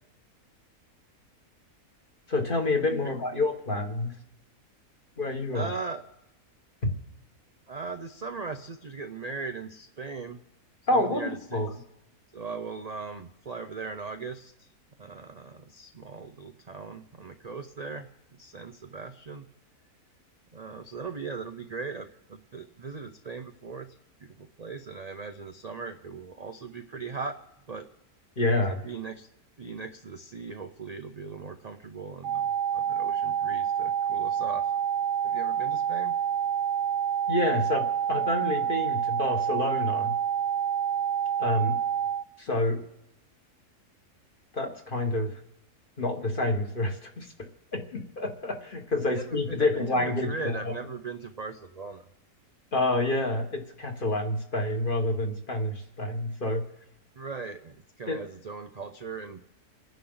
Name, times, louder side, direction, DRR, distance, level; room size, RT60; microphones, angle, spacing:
voice 1, 2.3-4.1 5.2-5.7 10.9-11.7 28.4-28.8 37.3-40.1 41.4-41.8 42.4-42.8 44.5-45.3 46.0-47.3 47.7-50.7 52.7-56.6 58.1-58.2, left 2 dB, 35° left, 3 dB, 1.7 m, -28 dB
voice 2, 5.5-6.0 7.7-10.4 10.9-11.7 12.3-14.7 15.0-18.1 18.4-19.5 20.5-27.3 27.7-27.9 28.8-29.3 29.6-34.7 35.2-36.2 49.1-52.1 57.2-59.4, right 4 dB, 45° right, 7 dB, 0.5 m, -39 dB
sound 1, 32.2-42.2, right 8 dB, 60° right, 0.9 m, -28 dB
29.0 x 10.5 x 3.9 m, 0.87 s
omnidirectional pair, 1.6 m